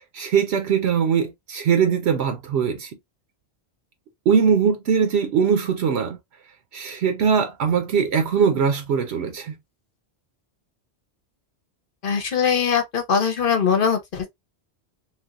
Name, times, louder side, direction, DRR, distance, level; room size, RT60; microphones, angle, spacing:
voice 1, 0.1-2.9 4.3-6.2 6.7-9.5, right 6 dB, 80° right, 0.9 m, -21 dB
voice 2, 12.0-14.3, left 6 dB, 60° left, 1.0 m, -21 dB
3.3 x 3.1 x 2.3 m
omnidirectional pair, 1.1 m